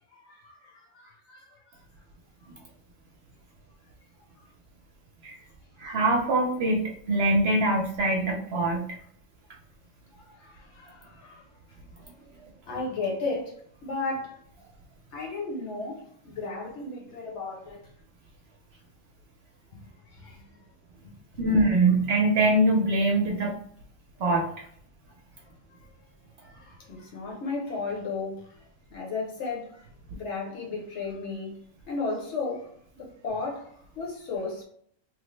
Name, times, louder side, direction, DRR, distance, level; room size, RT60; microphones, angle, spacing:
voice 1, 0.1-1.6 10.2-11.5 12.7-13.5 13.8-14.4 15.1-17.9 20.1-20.6 21.3-21.5 25.7-25.9 26.4-29.9 30.1-31.6 31.9-34.6, left 3 dB, 60° left, 1.1 m, -35 dB
voice 2, 5.8-6.8 7.1-8.8 21.4-23.5 24.2-24.4, right 2 dB, 60° right, 0.7 m, -23 dB
3.2 x 2.1 x 3.0 m
omnidirectional pair, 1.4 m